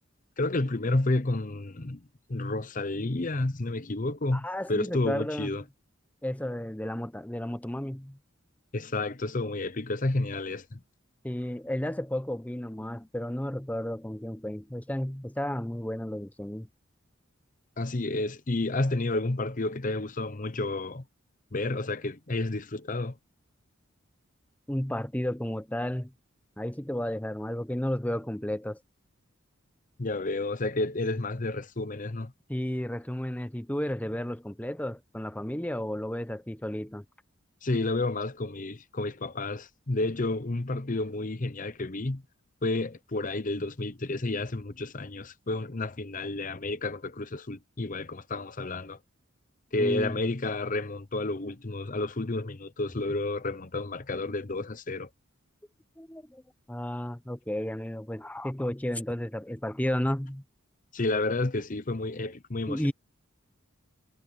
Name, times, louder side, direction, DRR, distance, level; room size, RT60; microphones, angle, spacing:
voice 1, 0.4-5.6 8.7-10.8 17.8-21.0 21.5-23.2 30.0-32.3 37.6-42.2 42.6-49.0 49.7-55.1 60.9-62.9, left 2 dB, 40° left, 0.9 m, -30 dB
voice 2, 4.3-5.5 6.2-8.2 11.2-16.7 24.7-26.1 26.6-28.8 32.5-37.0 49.8-50.2 56.0-56.4 56.7-60.4 62.7-62.9, left 1 dB, 10° left, 0.9 m, -32 dB
head